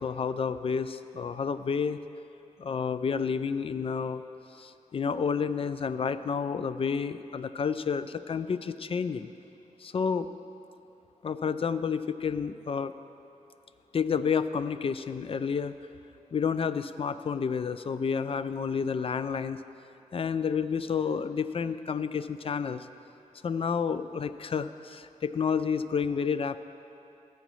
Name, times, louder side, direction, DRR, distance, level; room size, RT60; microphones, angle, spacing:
voice 1, 0.0-2.0 2.6-4.2 4.6-9.3 9.8-10.3 11.2-12.9 13.9-15.7 16.3-19.6 20.1-22.9 23.4-26.6, left 6 dB, 45° left, 12 dB, 0.4 m, -30 dB
15.0 x 8.2 x 3.1 m, 2.7 s
cardioid pair, 80°, 14 cm